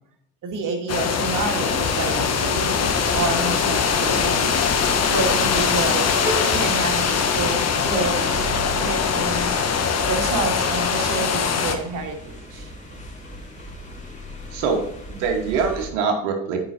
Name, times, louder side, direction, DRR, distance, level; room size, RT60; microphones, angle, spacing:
voice 1, 0.4-4.7 5.1-9.5 9.8-12.7, right 3 dB, 60° right, 2 dB, 2.1 m, -29 dB
sound 1, 0.9-11.8, left 6 dB, 45° left, 1.2 m, -22 dB
sound 2, 1.6-15.9, right 1 dB, 20° left, 2.9 m, -36 dB
voice 2, 14.5-16.6, right 5 dB, 85° right, 3 dB, 1.2 m, -24 dB
8.8 x 5.2 x 4.3 m, 0.76 s
hypercardioid pair, 65°, 36 cm